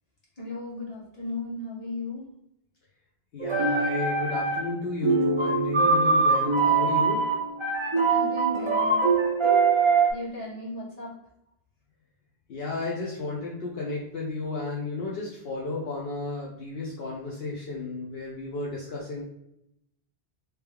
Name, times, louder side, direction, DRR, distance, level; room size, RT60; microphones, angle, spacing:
voice 1, 0.4-2.2 8.1-9.0 10.1-11.1, left 1 dB, 35° left, -6 dB, 1.4 m, -35 dB
voice 2, 3.3-7.2 12.5-19.2, left 3 dB, 65° left, -4 dB, 0.9 m, -33 dB
sound 1, 3.4-4.8 5.0-10.1, right 4 dB, 35° right, 0.6 m, -23 dB
3.3 x 3.0 x 3.4 m, 0.80 s
omnidirectional pair, 1.1 m